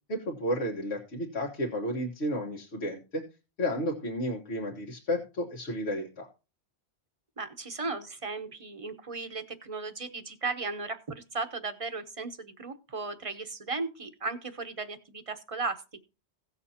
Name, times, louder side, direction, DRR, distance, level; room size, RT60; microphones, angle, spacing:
voice 1, 0.1-3.2 3.6-6.3, equal, 70° left, -2 dB, 1.7 m, -32 dB
voice 2, 7.4-15.8, right 3 dB, 35° right, 9 dB, 0.9 m, -36 dB
17.0 x 6.8 x 2.8 m, 0.31 s
omnidirectional pair, 1.2 m